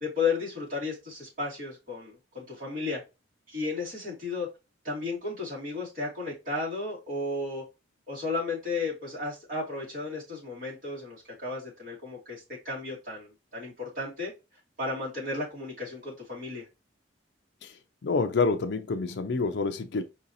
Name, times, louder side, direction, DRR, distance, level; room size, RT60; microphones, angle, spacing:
voice 1, 0.0-3.0 3.5-4.5 4.8-7.6 8.1-14.3 14.8-16.6, left 3 dB, 45° right, 2.2 m, -33 dB
voice 2, 18.0-20.0, left 4 dB, 60° left, 0.4 m, -27 dB
4.7 x 2.7 x 2.6 m
head